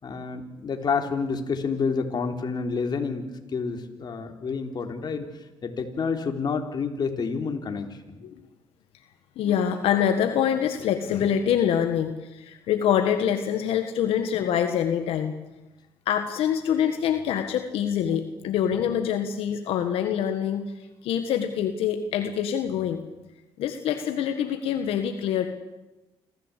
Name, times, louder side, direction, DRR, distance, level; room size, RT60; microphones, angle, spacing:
voice 1, 0.0-5.3 5.6-8.0, left 5 dB, 50° left, 5 dB, 3.3 m, -29 dB
voice 2, 9.4-15.3 16.1-20.7 21.0-23.0 23.6-25.5, left 9 dB, 85° left, 7 dB, 1.6 m, -25 dB
27.0 x 15.0 x 8.4 m, 1.0 s
cardioid pair, 85°, 10 cm